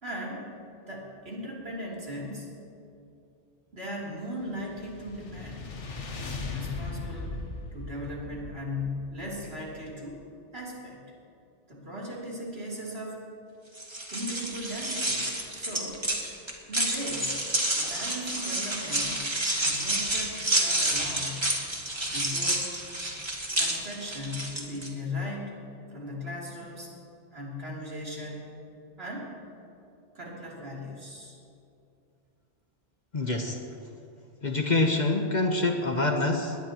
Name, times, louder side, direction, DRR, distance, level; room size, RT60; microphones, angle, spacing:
voice 1, 0.0-0.5 0.9-2.5 3.7-5.7 6.5-7.4 7.7-10.2 10.5-11.0 11.7-13.3 14.1-16.0 16.7-17.4 17.8-19.3 19.5-21.5 22.1-22.7 23.6-25.6 25.9-26.9 27.3-28.5 29.0-29.3 30.1-31.4, left 1 dB, 60° right, -5 dB, 3.5 m, -38 dB
sound 1, 4.4-9.9, left 3 dB, 75° left, 1.6 m, -38 dB
sound 2, 13.7-24.9, right 1 dB, 25° right, 1.9 m, -29 dB
voice 2, 33.1-33.6 34.4-36.6, left 2 dB, 40° left, 3 dB, 1.2 m, -26 dB
20.5 x 19.0 x 3.0 m, 2.6 s
omnidirectional pair, 1.2 m